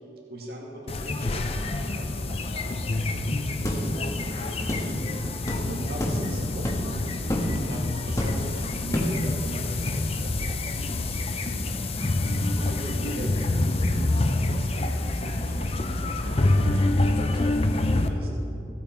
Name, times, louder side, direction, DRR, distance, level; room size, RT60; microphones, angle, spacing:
voice 1, 0.3-5.3 5.7-11.7 12.0-13.9 14.2-15.9 16.1-18.3, right 1 dB, 55° right, -2 dB, 2.1 m, -41 dB
sound 1, 0.9-18.1, left 2 dB, 35° left, 0.6 m, -27 dB
sound 2, 3.7-3.8 4.7-4.9 5.5-5.6 6.0-6.2 6.6-6.9 7.3-7.5 8.2-8.5 8.9-9.2, equal, 15° left, 1.3 m, -27 dB
15.5 x 8.4 x 4.5 m, 2.7 s
head